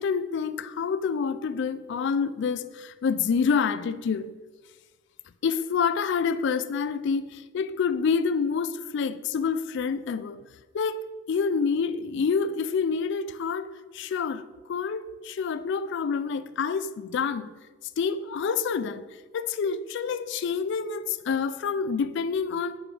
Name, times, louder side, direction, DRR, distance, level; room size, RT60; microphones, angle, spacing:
voice 1, 0.0-4.4 5.4-10.4 10.7-11.0 11.3-17.5 18.0-19.1 19.3-22.8, left 5 dB, 60° left, 0.3 m, -27 dB
8.9 x 5.0 x 3.3 m
head